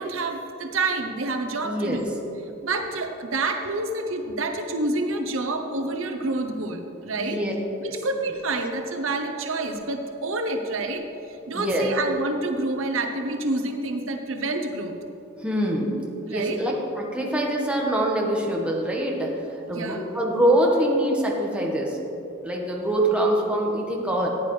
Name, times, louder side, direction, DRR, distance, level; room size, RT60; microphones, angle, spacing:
voice 1, 0.0-2.0 2.6-7.4 7.8-15.0 16.3-16.6 19.7-20.0, right 2 dB, 70° right, 5 dB, 0.8 m, -28 dB
voice 2, 1.6-2.0 7.2-7.5 11.5-11.9 15.4-15.9 16.3-22.0 22.4-24.3, right 1 dB, 5° right, -2 dB, 1.3 m, -24 dB
14.5 x 9.5 x 3.2 m, 3.0 s
head